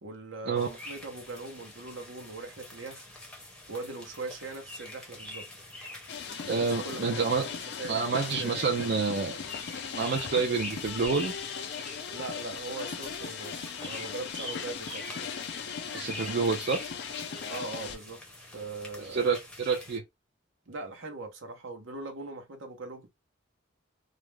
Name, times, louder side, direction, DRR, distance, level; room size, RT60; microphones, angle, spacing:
voice 1, 0.0-3.1 3.7-5.5 6.4-7.5 7.8-8.9 12.1-15.3 17.5-18.2 18.5-19.2 20.7-23.1, right 3 dB, 70° right, 0.8 m, -40 dB
sound 1, 0.5-20.0, left 1 dB, 5° left, 0.7 m, -46 dB
sound 2, 6.1-18.0, left 6 dB, 55° left, 0.4 m, -38 dB
voice 2, 6.5-7.5 7.9-9.4 9.9-11.3 15.9-16.8 19.0-20.0, right 4 dB, 50° right, 0.4 m, -28 dB
2.5 x 2.1 x 3.1 m
head